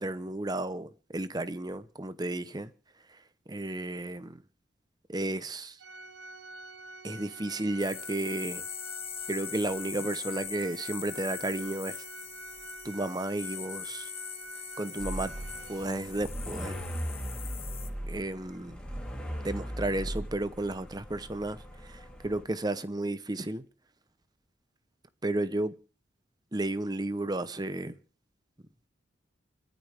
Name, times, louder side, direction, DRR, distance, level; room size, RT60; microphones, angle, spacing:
voice 1, 0.0-2.7 3.1-4.4 5.1-5.8 7.0-8.7 9.3-12.0 12.8-14.1 14.5-15.3 15.7-16.8 18.1-18.8 19.4-23.6 25.2-25.8 26.5-28.0, right 2 dB, 20° right, 0.8 m, -33 dB
Organ, 5.8-16.4, right 2 dB, 80° right, 1.8 m, -47 dB
sound 1, 7.8-17.9, left 9 dB, 30° left, 1.3 m, -42 dB
sound 2, 15.0-22.4, equal, 5° left, 3.2 m, -38 dB
29.5 x 10.0 x 3.5 m
head